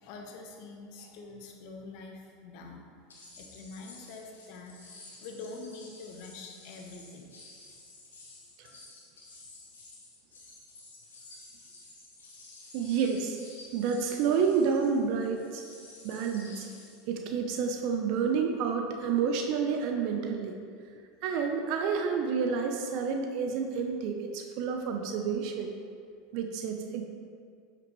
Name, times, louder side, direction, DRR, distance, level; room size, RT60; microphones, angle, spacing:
voice 1, 0.0-2.8 3.4-4.7 5.2-7.3 8.6-8.8, left 3 dB, 60° left, 2 dB, 1.1 m, -45 dB
sound 1, 3.1-17.1, left 2 dB, 90° left, 1.6 m, -52 dB
voice 2, 12.7-13.4 13.7-15.6 16.0-16.7 17.1-20.6 21.2-25.7 26.3-27.0, right 6 dB, 60° right, 4 dB, 0.6 m, -29 dB
8.4 x 5.9 x 3.1 m, 2.3 s
hypercardioid pair, 90°, 0 cm